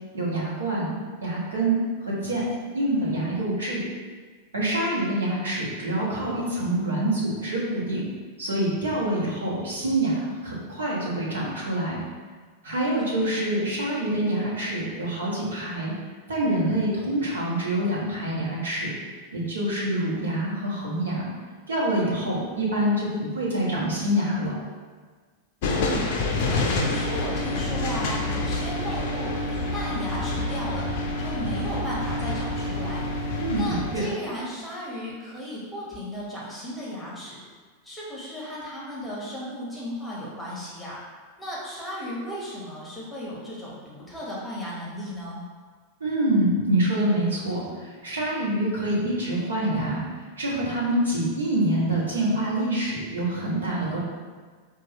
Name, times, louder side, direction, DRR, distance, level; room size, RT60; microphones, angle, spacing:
voice 1, 0.1-1.0 1.2-2.4 2.7-3.8 4.5-8.1 8.4-12.0 12.6-15.9 16.3-18.9 19.3-21.3 21.7-24.5 33.4-34.1 46.0-54.0, right 1 dB, 70° right, -6 dB, 1.1 m, -26 dB
voice 2, 13.0-13.5 22.2-22.5 25.6-26.2 26.5-30.9 31.2-33.0 33.5-37.4 37.8-41.0 41.4-45.4 53.8-54.0, equal, 5° left, -7 dB, 1.1 m, -35 dB
sound 1, 25.6-34.1, left 3 dB, 50° left, 0.5 m, -29 dB
sound 2, 26.8-33.8, equal, 25° right, 0.8 m, -32 dB
4.6 x 2.4 x 3.0 m, 1.5 s
figure-of-eight pair, 90°, 0 cm